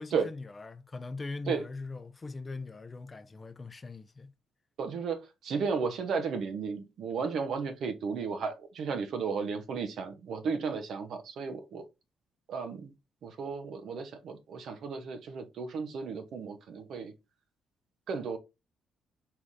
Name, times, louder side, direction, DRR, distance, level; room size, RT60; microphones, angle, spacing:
voice 1, 0.0-4.3, left 3 dB, 30° left, 0.5 m, -41 dB
voice 2, 4.8-11.8 12.5-12.9 13.2-17.1 18.1-18.4, right 5 dB, 70° right, 0.8 m, -34 dB
4.6 x 3.6 x 2.6 m
cardioid pair, 90°, 0 cm